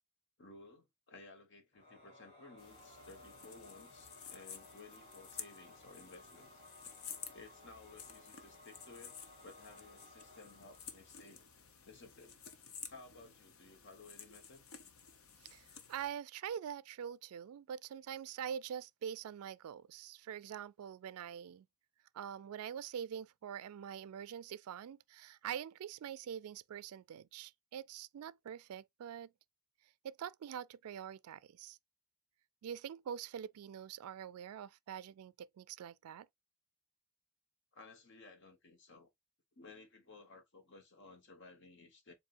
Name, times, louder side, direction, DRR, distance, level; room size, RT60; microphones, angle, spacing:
voice 1, 0.4-6.5 7.3-11.4 11.8-12.4 12.9-14.7 37.7-39.1 39.6-42.1, left 3 dB, 55° left, 1.3 m, -57 dB
Singing / Musical instrument, 1.7-11.8, left 1 dB, 25° left, 3.9 m, -59 dB
sound 1, 2.6-16.1, left 7 dB, 70° left, 0.9 m, -53 dB
voice 2, 15.4-21.7 22.1-29.3 30.0-31.8 32.6-36.3, right 8 dB, 90° right, 0.3 m, -45 dB
7.4 x 2.6 x 2.6 m
head